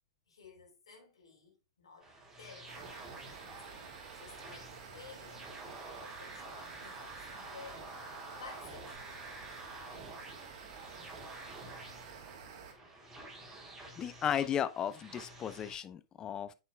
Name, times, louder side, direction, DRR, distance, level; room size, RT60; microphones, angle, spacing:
voice 1, 0.3-2.1 2.4-2.7 3.4-5.5 5.8-8.1 8.3-9.0, left 4 dB, 80° left, 3.3 m, -54 dB
sound 1, 2.0-15.7, right 2 dB, 15° right, 3.3 m, -49 dB
sound 2, 2.7-12.7, right 6 dB, 55° right, 2.5 m, -51 dB
voice 2, 14.0-16.5, left 9 dB, 25° left, 0.6 m, -35 dB
8.5 x 6.7 x 2.3 m
hypercardioid pair, 110°, 3 cm